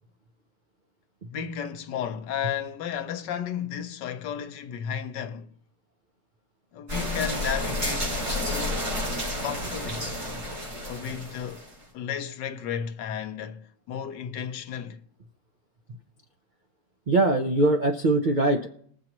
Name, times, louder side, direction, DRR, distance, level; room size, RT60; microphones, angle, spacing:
voice 1, 1.3-5.5 6.7-8.9 9.4-10.2 10.9-11.7 11.9-15.0, left 8 dB, 85° left, 1.4 m, -33 dB
sound 1, 6.9-11.7, left 1 dB, 65° right, 5.3 m, -30 dB
voice 2, 17.1-18.7, right 2 dB, 85° right, 0.4 m, -22 dB
21.0 x 7.4 x 3.0 m
omnidirectional pair, 1.9 m